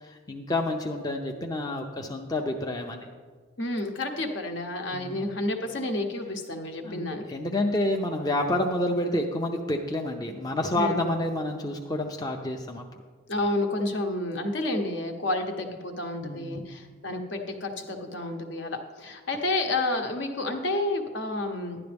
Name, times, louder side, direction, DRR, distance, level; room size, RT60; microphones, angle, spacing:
voice 1, 0.0-3.1 4.9-5.3 6.8-12.8 16.2-16.7, left 1 dB, 20° left, 2 dB, 0.5 m, -29 dB
voice 2, 3.6-7.3 10.8-11.0 13.3-21.8, left 2 dB, 60° left, 5 dB, 1.0 m, -30 dB
11.5 x 10.5 x 3.4 m, 1.5 s
head